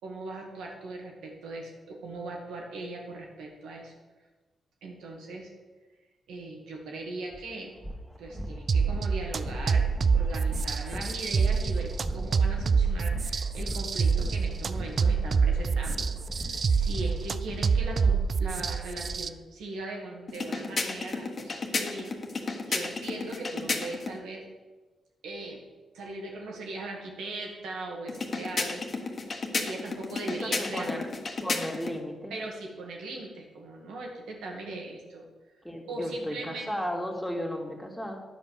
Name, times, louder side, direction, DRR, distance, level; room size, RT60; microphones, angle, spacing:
voice 1, 0.0-3.9 4.8-5.5 6.3-7.7 8.2-16.1 16.3-24.4 25.2-25.6 25.9-28.8 29.6-31.0 32.3-35.3 35.9-36.7, right 2 dB, 80° right, 0 dB, 1.8 m, -39 dB
sound 1, 7.3-7.4 7.8-19.2, equal, 15° right, 1.7 m, -38 dB
sound 2, 8.7-19.3, right 5 dB, 55° right, 0.4 m, -26 dB
sound 3, 20.3-24.2 28.1-32.0, left 3 dB, 50° left, 1.3 m, -33 dB
voice 2, 30.4-31.1 31.4-32.3 35.6-38.2, equal, 5° left, 0 dB, 2.2 m, -34 dB
10.0 x 5.2 x 6.5 m, 1.3 s
supercardioid pair, 45°, 0 cm